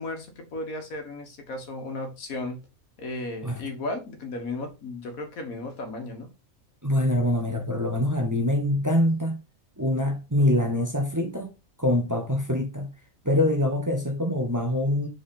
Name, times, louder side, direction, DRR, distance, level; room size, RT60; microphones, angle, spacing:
voice 1, 0.0-2.6 3.0-6.3, left 2 dB, 70° left, 1.8 m, -35 dB
voice 2, 6.8-9.4 9.8-11.5 11.8-12.9 13.2-15.1, left 1 dB, 15° right, 1.2 m, -24 dB
4.9 x 4.3 x 5.3 m
omnidirectional pair, 1.5 m